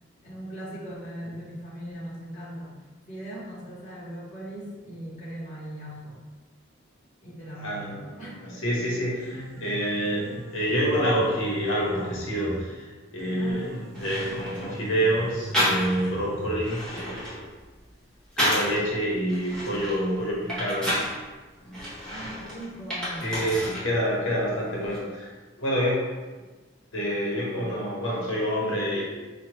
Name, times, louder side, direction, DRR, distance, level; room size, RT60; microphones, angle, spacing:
voice 1, 0.2-2.7 3.1-6.2 7.2-8.4 13.4-13.8 22.1-23.3, right 1 dB, 40° left, -8 dB, 1.2 m, -39 dB
voice 2, 7.6-17.5 18.4-20.9 21.6-21.8 23.2-25.3 25.6-26.0 26.9-29.0, equal, 85° left, -4 dB, 0.9 m, -27 dB
Piano, 9.0-17.0, equal, 50° right, 0.6 m, -39 dB
sound 1, 13.5-13.6 13.9-14.7 15.5-16.2 16.5-18.8 19.3-21.1 21.7-23.9 24.2-25.0, equal, 5° left, 1.0 m, -30 dB
4.6 x 2.3 x 3.0 m, 1.3 s
head